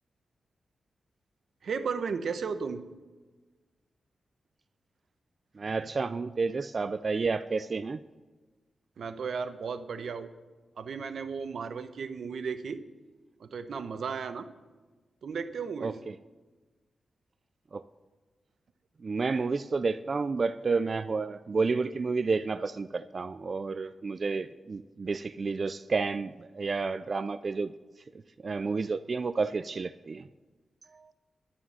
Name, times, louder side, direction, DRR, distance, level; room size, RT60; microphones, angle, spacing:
voice 1, 1.6-2.8 9.0-10.3 10.8-12.8 13.4-14.5 15.2-16.0, right 5 dB, 65° right, 10 dB, 0.8 m, -34 dB
voice 2, 5.5-8.0 15.8-16.2 17.7-17.9 19.0-27.7 28.4-30.3 30.9-31.1, right 4 dB, 40° right, 13 dB, 0.3 m, -30 dB
11.5 x 9.9 x 5.6 m, 1.3 s
wide cardioid pair, 160°, 0 cm